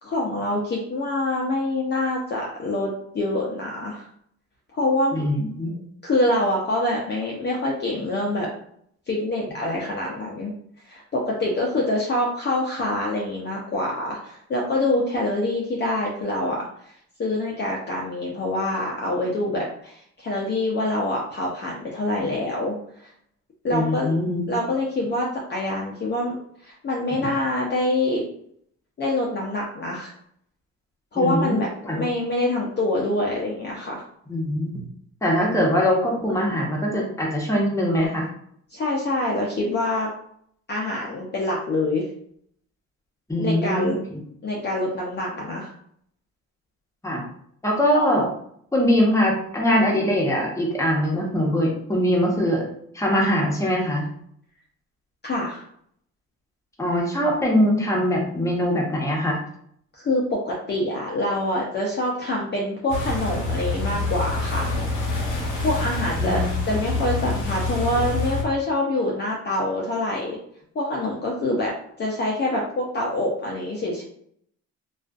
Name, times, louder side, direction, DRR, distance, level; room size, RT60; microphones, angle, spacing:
voice 1, 0.0-4.1 4.7-5.2 6.0-8.5 9.1-10.5 10.8-16.9 17.2-22.7 23.0-23.1 23.6-24.1 24.5-26.4 26.6-28.2 29.0-30.1 31.1-34.0 38.7-40.1 40.7-42.1 43.4-44.0 44.4-45.7 55.2-55.6 59.9-64.7 65.6-70.4 70.7-74.0, left 1 dB, 35° left, -3 dB, 0.5 m, -25 dB
voice 2, 5.1-5.7 23.7-24.5 31.1-31.5 31.8-32.0 34.3-34.8 35.2-38.3 43.3-43.9 47.0-47.2 47.6-48.3 48.7-52.7 52.9-54.1 56.8-59.4 66.2-66.4, equal, 10° left, -2 dB, 0.8 m, -22 dB
sound 1, 62.9-68.4, left 2 dB, 90° left, 0.8 m, -26 dB
2.4 x 2.4 x 2.3 m, 0.67 s
cardioid pair, 90°, 30 cm